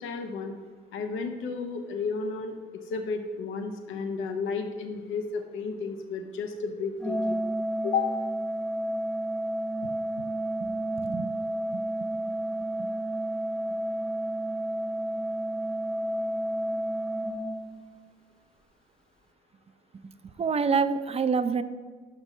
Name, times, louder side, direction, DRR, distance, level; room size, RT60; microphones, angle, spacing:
voice 1, 0.0-0.5 0.9-2.5 2.9-7.4 7.8-8.1, left 5 dB, 85° left, 5 dB, 0.8 m, -32 dB
Organ, 7.0-18.0, right 1 dB, 5° left, 0.7 m, -31 dB
voice 2, 11.7-12.1 12.8-12.9 20.4-21.6, right 5 dB, 30° right, 12 dB, 0.5 m, -27 dB
6.0 x 6.0 x 5.5 m, 1.5 s
cardioid pair, 90°, 20 cm